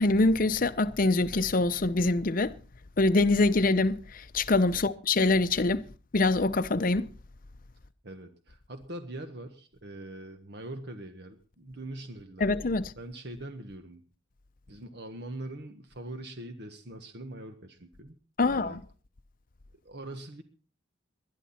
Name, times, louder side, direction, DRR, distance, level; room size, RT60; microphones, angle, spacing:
voice 1, 0.0-2.5 3.0-5.8 6.1-7.1 12.4-12.9 18.4-18.8, left 2 dB, 45° left, 0.7 m, -24 dB
voice 2, 8.0-14.0 14.7-18.2 18.4-18.8 19.8-20.4, right 1 dB, 60° right, 1.5 m, -42 dB
20.5 x 11.5 x 4.3 m
head